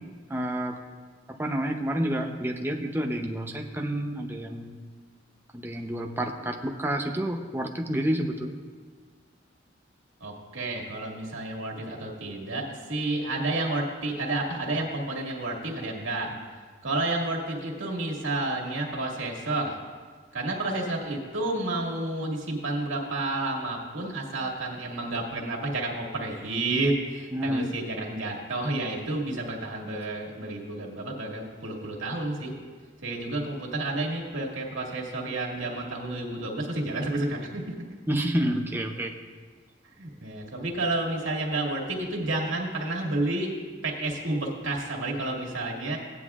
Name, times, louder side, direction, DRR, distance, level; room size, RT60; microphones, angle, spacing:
voice 1, 0.3-0.8 1.4-4.8 5.5-8.5 27.3-27.7 38.1-39.1, right 1 dB, 10° right, 3 dB, 0.7 m, -29 dB
voice 2, 10.2-16.3 16.8-19.8 20.3-32.5 33.0-37.7 40.0-43.5 43.8-46.0, right 2 dB, 85° right, -1 dB, 2.0 m, -30 dB
17.0 x 9.6 x 2.4 m, 1.5 s
head